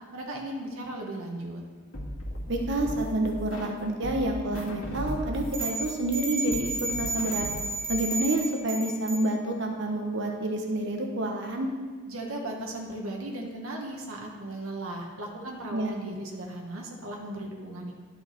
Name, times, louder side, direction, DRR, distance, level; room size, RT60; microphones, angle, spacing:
voice 1, 0.1-1.6 12.1-17.9, right 1 dB, 85° right, 0 dB, 1.3 m, -37 dB
sound 1, 1.9-3.8 4.0-8.0, equal, 80° left, 1.8 m, -37 dB
voice 2, 2.5-7.5 7.9-11.7 15.7-15.9, right 1 dB, 60° right, 2 dB, 1.0 m, -28 dB
sound 2, 5.5-9.2, right 2 dB, 25° right, 2.0 m, -32 dB
11.5 x 5.5 x 4.4 m, 1.5 s
head